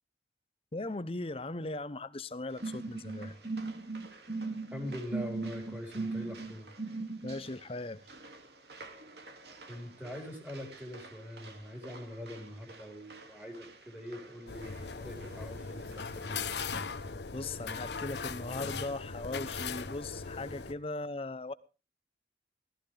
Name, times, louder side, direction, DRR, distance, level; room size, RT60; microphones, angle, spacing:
voice 1, 0.7-3.3 7.2-8.0 17.3-21.5, left 2 dB, 30° left, 0.7 m, -38 dB
sound 1, 2.5-17.1, right 3 dB, 65° right, 2.3 m, -53 dB
sound 2, 2.6-7.4, right 3 dB, 40° right, 1.3 m, -38 dB
voice 2, 4.7-6.7 9.6-16.5, left 1 dB, 10° right, 4.8 m, -43 dB
sound 3, 14.5-20.7, left 5 dB, 70° left, 0.9 m, -39 dB
17.0 x 14.0 x 3.4 m
head